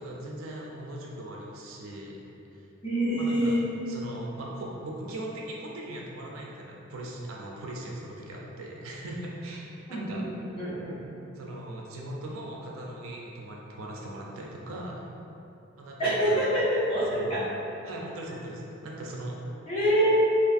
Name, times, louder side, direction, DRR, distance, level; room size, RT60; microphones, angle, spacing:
voice 1, 0.0-2.2 2.5-2.7 3.2-3.6 3.9-10.2 11.3-15.0 15.8-16.5 17.1-17.4 17.8-19.4, right 1 dB, 90° right, -2 dB, 0.4 m, -39 dB
voice 2, 2.8-3.6 9.9-10.3 10.5-11.0 16.0-17.4 19.7-20.2, equal, 30° left, -11 dB, 0.9 m, -25 dB
2.9 x 2.4 x 2.5 m, 2.8 s
head